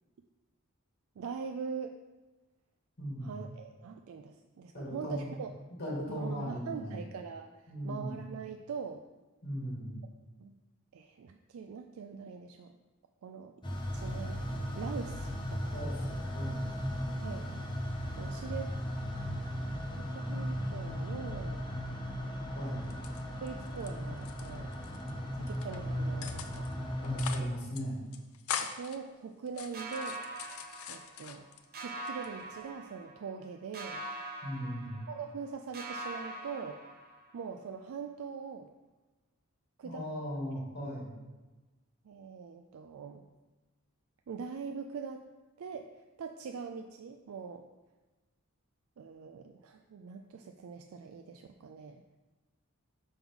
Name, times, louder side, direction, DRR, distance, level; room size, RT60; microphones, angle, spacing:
voice 1, 1.2-2.0 3.2-5.5 6.1-7.5 7.8-9.0 10.4-10.5 10.9-12.8 13.2-13.5 13.9-14.4 14.7-16.0 17.2-17.5 18.2-18.7 19.9-21.7 22.6-22.7 23.4-24.7 25.3-26.7 28.6-30.2 30.9-31.5 31.8-34.1 35.1-36.8 37.3-38.7 39.8-40.1 42.0-43.2 44.3-45.2 45.6-47.6 49.0-52.0, right 6 dB, 75° right, 6 dB, 0.4 m, -42 dB
voice 2, 3.0-3.4 4.7-5.3 5.7-7.0 7.7-8.1 9.4-9.9 15.7-16.7 22.6-23.0 27.0-28.0 34.4-35.0 39.8-41.1, equal, 50° left, -5 dB, 2.2 m, -38 dB
sound 1, 13.6-27.4, equal, 20° left, 0.8 m, -36 dB
sound 2, 22.8-23.9 24.2-25.1 25.5-25.8 26.2-26.7 27.0-27.5 27.7-27.8 28.1-29.0 29.5-31.6 32.1-32.7, left 8 dB, 85° left, 0.5 m, -41 dB
sound 3, 29.7-31.4 31.7-33.4 33.7-35.5 35.7-37.4, right 2 dB, 45° right, 0.7 m, -43 dB
5.9 x 5.4 x 3.6 m, 1.2 s
head